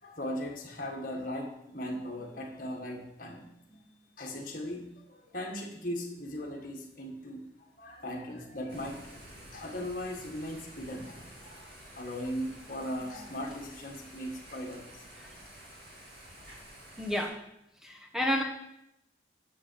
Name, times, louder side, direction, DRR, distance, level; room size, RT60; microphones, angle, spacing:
voice 1, 0.0-3.8 4.2-7.4 7.8-9.2 9.5-11.3 11.9-15.0, equal, 50° left, 0 dB, 1.8 m, -38 dB
Thunder / Rain, 8.7-17.3, right 1 dB, 55° right, 2.8 m, -50 dB
voice 2, 17.0-17.3 17.8-18.4, equal, 5° right, 1 dB, 1.3 m, -30 dB
9.6 x 7.8 x 4.7 m, 0.83 s
head